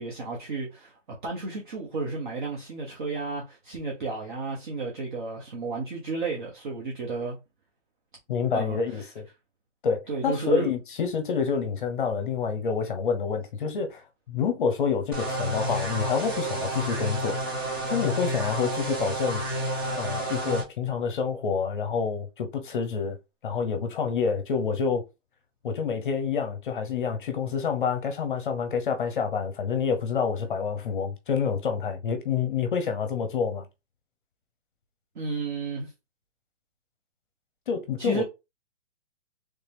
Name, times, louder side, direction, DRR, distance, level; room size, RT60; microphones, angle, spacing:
voice 1, 0.0-7.4 8.5-9.1 10.1-10.7 35.1-35.9 38.0-38.2, right 3 dB, 40° right, 1.0 m, -32 dB
voice 2, 8.3-9.3 9.8-17.4 17.9-23.2 23.4-25.0 25.6-33.6 37.7-38.2, left 6 dB, 45° left, 0.7 m, -28 dB
sound 1, 15.1-20.6, right 1 dB, 20° right, 0.6 m, -30 dB
3.3 x 2.7 x 3.4 m
hypercardioid pair, 165°, 37 cm